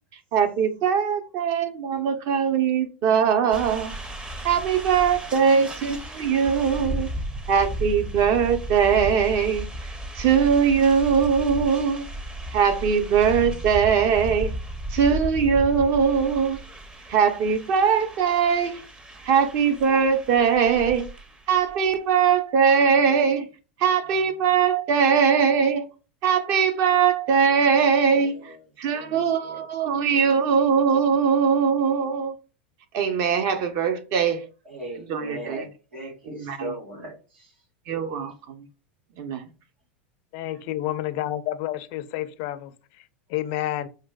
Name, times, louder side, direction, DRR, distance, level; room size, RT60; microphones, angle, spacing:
voice 1, 0.3-3.9 4.2-7.1 7.5-12.1 12.5-14.5 14.9-16.6 17.1-18.8 19.2-21.1 21.5-23.5 23.8-25.8 26.2-28.3 28.8-32.3 32.9-34.4 35.1-35.7 36.3-36.7 37.9-38.7 39.2-39.5, right 6 dB, 50° right, 0.6 m, -21 dB
sound 1, 3.5-21.9, right 1 dB, 15° right, 0.5 m, -35 dB
voice 2, 28.1-28.6 28.9-30.0 34.6-37.5 40.5-40.6, right 1 dB, 85° right, 1.6 m, -39 dB
voice 3, 40.3-43.9, left 14 dB, 55° left, 0.4 m, -30 dB
4.5 x 2.2 x 2.2 m
hypercardioid pair, 95°, 6 cm